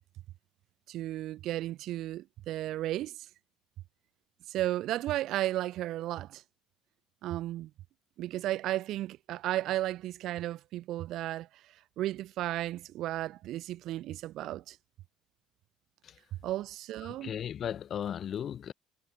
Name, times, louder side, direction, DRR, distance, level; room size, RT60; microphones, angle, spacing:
voice 1, 0.9-3.3 4.5-6.4 7.2-7.7 8.2-11.5 12.0-14.8 16.4-17.3, right 14 dB, 65° right, 3.4 m, -34 dB
voice 2, 17.0-18.7, left 9 dB, 50° left, 3.6 m, -36 dB
supercardioid pair, 95°, 0 cm